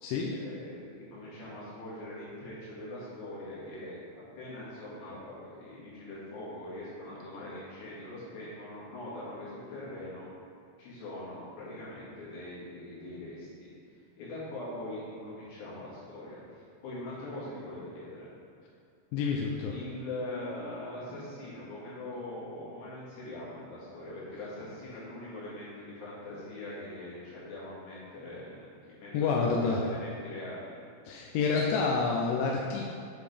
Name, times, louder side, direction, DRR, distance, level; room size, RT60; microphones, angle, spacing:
voice 1, 0.3-4.0 4.4-10.3 10.8-13.7 14.2-16.4 16.8-18.3 19.7-28.5 28.8-30.7, left 1 dB, 70° left, -9 dB, 3.9 m, -42 dB
voice 2, 19.1-19.7 29.1-29.8 31.1-32.9, left 4 dB, 85° left, -1 dB, 2.8 m, -28 dB
7.9 x 5.0 x 3.4 m, 2.3 s
omnidirectional pair, 5.4 m